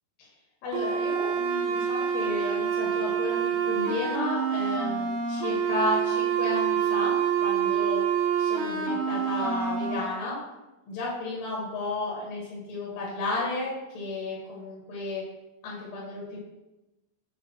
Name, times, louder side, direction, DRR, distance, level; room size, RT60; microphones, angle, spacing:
voice 1, 0.6-8.0 8.4-10.4 10.9-15.2 15.6-16.4, left 2 dB, 70° left, -5 dB, 2.6 m, -33 dB
sound 1, 0.7-10.0, right 8 dB, 80° right, 1.7 m, -27 dB
7.1 x 2.4 x 5.5 m, 1.0 s
omnidirectional pair, 4.5 m